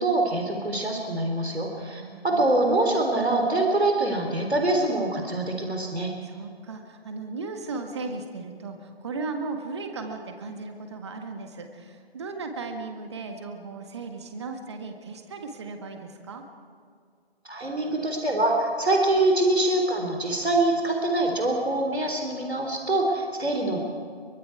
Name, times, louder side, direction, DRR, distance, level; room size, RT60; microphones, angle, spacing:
voice 1, 0.0-6.1 17.5-23.8, right 2 dB, 80° right, 2 dB, 3.7 m, -24 dB
voice 2, 1.9-2.5 6.2-16.4, right 3 dB, 25° right, 5 dB, 1.7 m, -36 dB
23.5 x 23.5 x 4.7 m, 2.2 s
figure-of-eight pair, 150°, 32 cm